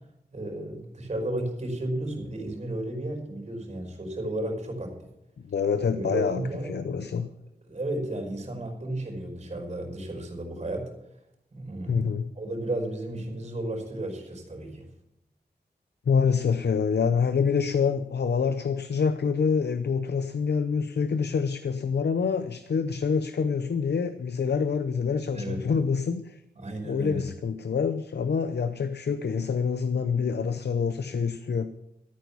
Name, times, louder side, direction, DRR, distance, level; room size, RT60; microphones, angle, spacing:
voice 1, 0.3-5.0 5.9-7.3 7.7-10.9 11.5-12.1 12.3-14.9 25.3-25.6 26.5-27.2, right 1 dB, 40° right, 3 dB, 5.1 m, -33 dB
voice 2, 5.5-7.3 11.9-12.3 16.1-26.4 26.8-31.7, left 6 dB, 80° left, 10 dB, 0.7 m, -26 dB
14.0 x 9.3 x 7.0 m, 0.85 s
wide cardioid pair, 115°, 17 cm